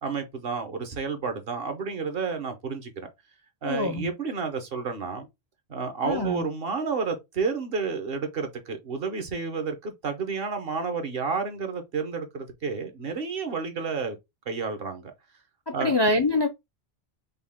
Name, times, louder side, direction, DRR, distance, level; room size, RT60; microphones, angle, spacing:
voice 1, 0.0-3.1 3.6-5.3 5.7-14.2 14.5-15.1 15.7-15.9, right 5 dB, 65° right, 1.2 m, -31 dB
voice 2, 3.6-4.1 6.0-6.4 15.7-16.5, left 2 dB, 40° left, 0.4 m, -25 dB
5.3 x 2.4 x 3.5 m
omnidirectional pair, 1.1 m